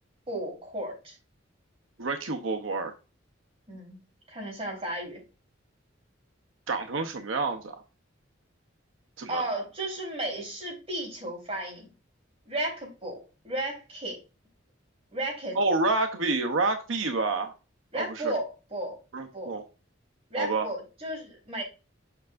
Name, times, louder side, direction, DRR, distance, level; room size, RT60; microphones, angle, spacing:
voice 1, 0.3-1.2 3.7-4.0 4.3-5.2 9.3-11.9 12.5-14.2 15.1-15.7 17.9-19.0 19.3-19.5 20.3-21.6, right 1 dB, 30° right, -1 dB, 3.7 m, -34 dB
voice 2, 2.0-2.9 6.7-7.8 9.2-9.4 15.5-17.5 17.9-18.3 19.1-19.6 20.4-20.7, right 3 dB, 90° right, 5 dB, 0.8 m, -28 dB
7.2 x 5.6 x 2.5 m, 0.30 s
head